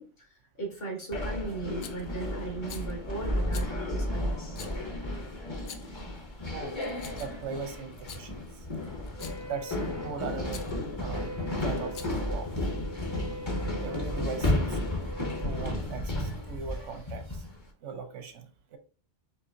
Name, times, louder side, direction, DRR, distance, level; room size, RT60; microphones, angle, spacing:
voice 1, 0.0-4.6, right 3 dB, 55° left, 1 dB, 1.5 m, -38 dB
sound 1, 1.1-17.6, left 1 dB, 30° left, 0.7 m, -33 dB
Rattle, 1.8-2.1 2.6-2.9 3.5-3.7 4.5-4.8 5.5-6.0 6.7-7.4 7.9-8.2 9.1-9.5 10.5-10.7 11.8-12.3, left 7 dB, 85° left, 0.9 m, -45 dB
voice 2, 7.1-8.4 9.4-10.6 11.0-11.3 11.6-12.5 13.1-13.2 13.7-14.8 15.4-17.4 17.8-18.8, right 6 dB, 90° right, 7 dB, 1.1 m, -39 dB
Wind instrument woodwind instrument, 9.1-15.8, left 1 dB, 35° right, 0.4 m, -43 dB
4.7 x 2.8 x 2.6 m, 0.38 s
omnidirectional pair, 1.2 m